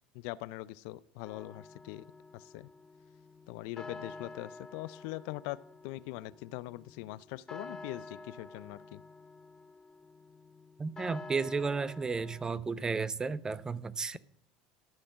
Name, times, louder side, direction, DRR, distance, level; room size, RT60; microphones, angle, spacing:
voice 1, 0.2-2.0 2.3-2.7 3.5-9.0, left 18 dB, 70° left, 0.4 m, -42 dB
sound 1, 1.2-12.5, left 3 dB, 20° left, 0.6 m, -49 dB
voice 2, 10.8-14.2, right 4 dB, 20° right, 0.6 m, -33 dB
13.0 x 4.3 x 5.8 m
hypercardioid pair, 80°, 3 cm